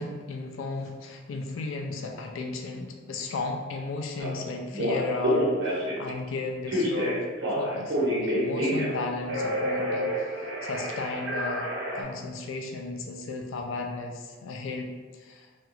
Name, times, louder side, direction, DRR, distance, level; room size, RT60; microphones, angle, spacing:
voice 1, 0.0-7.2 7.6-10.3 10.6-15.5, left 3 dB, 80° left, 2 dB, 0.3 m, -34 dB
Telephone, 4.2-4.3 4.7-6.1 6.7-9.0 9.3-12.0, equal, 65° right, 0.9 m, -28 dB
2.9 x 2.4 x 2.9 m, 1.4 s
head